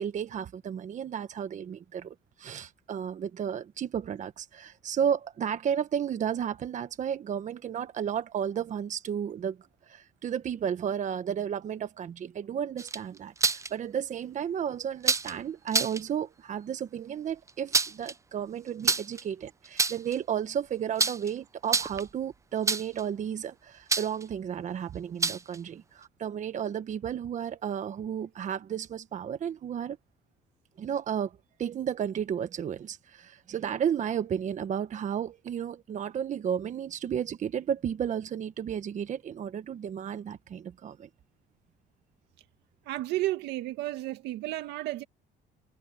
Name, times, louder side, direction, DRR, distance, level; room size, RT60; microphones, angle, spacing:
voice 1, 0.0-9.6 9.9-30.0 30.8-41.1, right 8 dB, 45° right, 1.3 m, -33 dB
sound 1, 12.8-13.7 15.0-15.3 15.7-16.0 17.5-18.1 18.8-19.2 19.6-20.2 21.0-21.3 21.6-22.1 22.7-23.0 23.9-24.2 25.2-25.6, right 4 dB, 15° right, 0.6 m, -27 dB
voice 2, 42.9-45.0, right 16 dB, 85° right, 1.9 m, -32 dB
cardioid pair, 110°, 17 cm